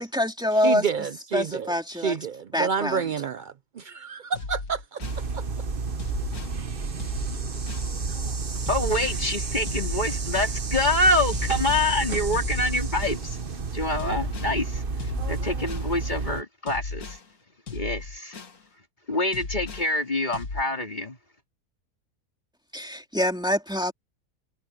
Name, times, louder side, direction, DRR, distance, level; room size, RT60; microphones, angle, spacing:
voice 1, 0.0-0.9 1.3-2.2 2.5-3.0 22.7-23.9, left 1 dB, 5° right, 2.6 m, -25 dB
voice 2, 0.6-5.0 5.3-5.4, right 6 dB, 85° right, 0.4 m, -29 dB
sound 1, 4.3-5.2 6.0-6.6 7.0-7.9 8.7-9.2 9.7-10.6 11.3-11.9 12.3-13.2 14.0-14.6 15.0-15.9 16.7-17.2 17.7-18.6 19.3-19.9 20.3-20.6, left 4 dB, 75° left, 2.4 m, -36 dB
sound 2, 5.0-16.4, right 4 dB, 40° right, 1.3 m, -30 dB
voice 3, 8.7-13.4 13.7-14.8 15.3-17.2 17.7-18.4 19.1-21.2, left 2 dB, 30° left, 3.4 m, -26 dB
omnidirectional pair, 1.6 m